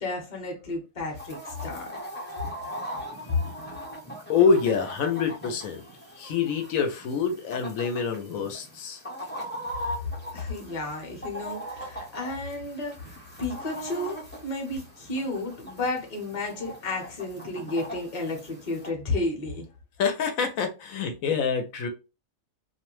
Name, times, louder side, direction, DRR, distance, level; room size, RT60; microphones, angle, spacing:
voice 1, 0.0-2.0 3.3-3.5 10.0-13.1 13.4-19.7, left 2 dB, 35° left, 0.8 m, -32 dB
Chicken rooster, 1.2-18.9, equal, 10° left, 0.5 m, -40 dB
voice 2, 4.3-5.8 6.2-9.0 20.0-21.9, left 5 dB, 85° left, 1.0 m, -26 dB
2.5 x 2.1 x 3.0 m
omnidirectional pair, 1.4 m